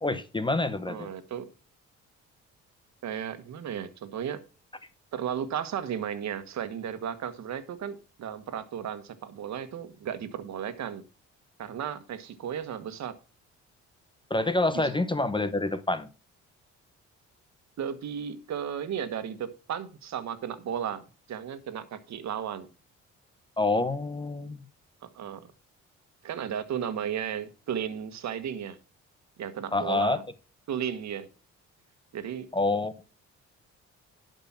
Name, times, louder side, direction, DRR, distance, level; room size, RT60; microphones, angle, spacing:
voice 1, 0.0-1.1 14.3-16.1 23.6-24.6 29.7-30.2 32.5-32.9, left 2 dB, 15° left, 0.8 m, -27 dB
voice 2, 0.9-1.5 3.0-4.4 5.1-11.0 11.6-13.1 14.7-14.9 17.8-22.7 25.1-25.5 26.2-28.8 29.4-30.2 30.7-31.3 32.1-32.5, right 8 dB, 65° right, 1.5 m, -34 dB
11.5 x 5.4 x 5.7 m
cardioid pair, 90°, 30 cm